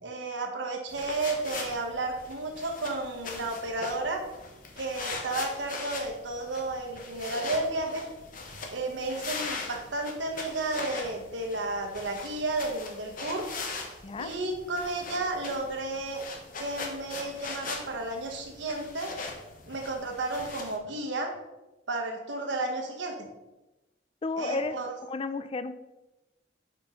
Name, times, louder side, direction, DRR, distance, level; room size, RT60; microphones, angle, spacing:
voice 1, 0.0-4.2 4.8-8.1 8.7-13.5 14.2-16.2 16.6-19.1 19.7-21.3 21.9-23.3 24.4-24.9, right 2 dB, 75° right, 2 dB, 1.2 m, -32 dB
sound 1, 0.9-20.8, left 3 dB, 50° left, 1.0 m, -40 dB
voice 2, 24.2-24.8 25.1-25.7, left 3 dB, 30° left, 12 dB, 0.4 m, -32 dB
5.3 x 4.4 x 5.4 m, 1.0 s
head